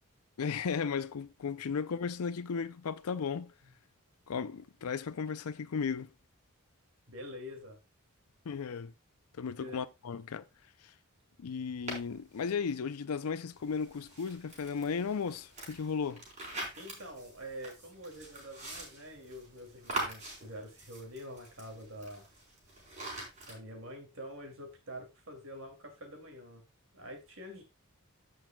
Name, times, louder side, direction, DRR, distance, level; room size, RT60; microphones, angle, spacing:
voice 1, 0.4-3.5 4.3-6.1 8.5-8.9 9.4-10.4 10.8-10.9 11.4-16.2, left 6 dB, 85° left, 0.5 m, -35 dB
voice 2, 7.1-7.8 9.6-9.8 16.8-22.2 23.5-26.6 26.9-27.7, equal, 65° right, 2.6 m, -46 dB
sound 1, 11.9-12.5 13.5-23.6, right 2 dB, 30° right, 4.2 m, -44 dB
15.0 x 6.1 x 2.3 m
head